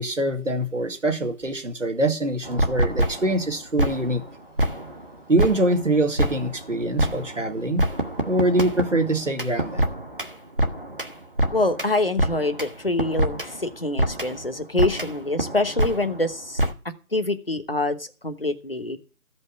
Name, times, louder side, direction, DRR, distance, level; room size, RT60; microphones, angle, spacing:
voice 1, 0.0-4.2 5.3-7.9 8.3-9.8, right 1 dB, 55° right, 6 dB, 2.0 m, -24 dB
sound 1, 2.4-3.5 3.8-4.3 4.6-7.5 7.8-12.7 13.0-14.5 14.8-16.3 16.6-16.7, right 1 dB, 35° right, 1.3 m, -26 dB
voice 2, 11.5-16.6 17.1-19.0, left 2 dB, 40° left, 9 dB, 1.1 m, -25 dB
14.5 x 5.4 x 8.3 m, 0.36 s
figure-of-eight pair, 180°, 44 cm